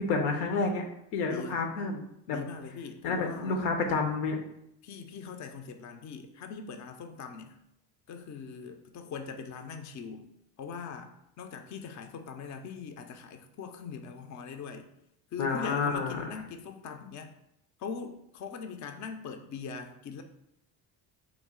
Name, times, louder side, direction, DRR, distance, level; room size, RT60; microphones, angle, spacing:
voice 1, 0.1-0.8 1.1-2.0 2.3-2.4 3.0-4.4 15.4-16.2, left 4 dB, 85° left, 4 dB, 0.7 m, -29 dB
voice 2, 1.3-1.6 2.3-3.6 4.8-7.6 8.1-10.3 10.6-14.9 15.3-17.3 17.8-20.2, left 6 dB, 40° left, 6 dB, 0.5 m, -41 dB
3.0 x 2.4 x 3.6 m, 0.79 s
supercardioid pair, 70°, 49 cm